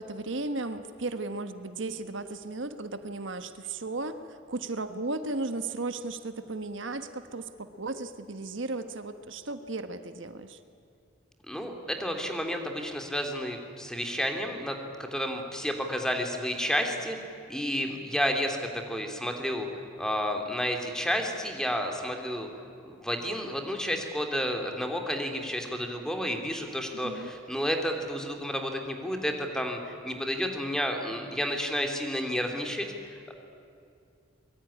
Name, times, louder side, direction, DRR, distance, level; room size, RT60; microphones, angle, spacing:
voice 1, 0.0-10.6 27.0-27.3, right 2 dB, 75° right, 9 dB, 1.3 m, -35 dB
voice 2, 11.5-17.2 17.5-19.7 20.0-22.5 22.8-33.3, equal, 5° left, 3 dB, 2.8 m, -31 dB
24.0 x 22.5 x 10.0 m, 2.5 s
head